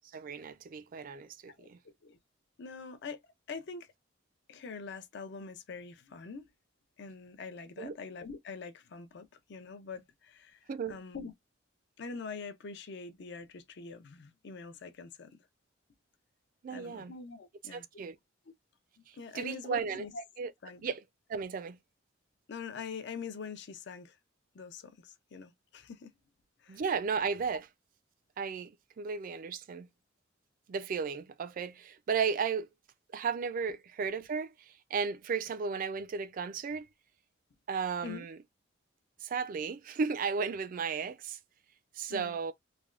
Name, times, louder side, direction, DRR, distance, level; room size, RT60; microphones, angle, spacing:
voice 1, 0.1-1.8 7.8-7.9 10.7-11.0 16.6-17.1 17.7-18.2 19.3-20.1 20.4-20.5 20.8-21.0 21.3-21.8 26.7-27.6 28.4-29.9 30.7-32.7 33.1-36.9 37.7-38.4 39.2-41.4 42.0-42.5, right 5 dB, 45° right, 0.3 m, -34 dB
voice 2, 1.6-2.2 2.6-3.2 3.5-3.9 4.5-6.5 7.0-11.3 12.0-15.4 16.7-17.9 19.0-20.2 20.6-20.9 22.5-24.2 24.5-26.1 26.6-26.8 38.0-38.3 42.1-42.4, left 5 dB, 60° left, 0.5 m, -44 dB
3.2 x 2.2 x 2.4 m
head